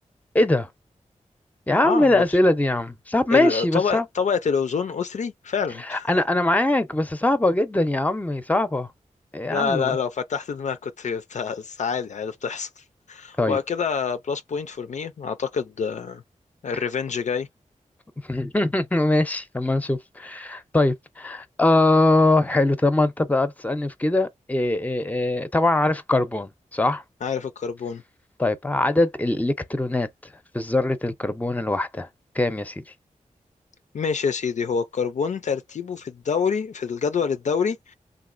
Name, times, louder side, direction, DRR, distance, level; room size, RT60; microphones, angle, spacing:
voice 1, 0.3-0.7 1.7-4.0 5.9-8.9 9.3-10.0 13.4-13.6 18.3-27.0 28.4-30.1 30.5-32.1 32.3-32.8, left 2 dB, 10° left, 0.6 m, -22 dB
voice 2, 1.8-2.4 3.3-6.1 9.5-16.2 16.6-17.5 27.2-28.0 33.9-37.9, left 6 dB, 65° left, 0.4 m, -27 dB
3.0 x 2.5 x 2.5 m
cardioid pair, 55°, 13 cm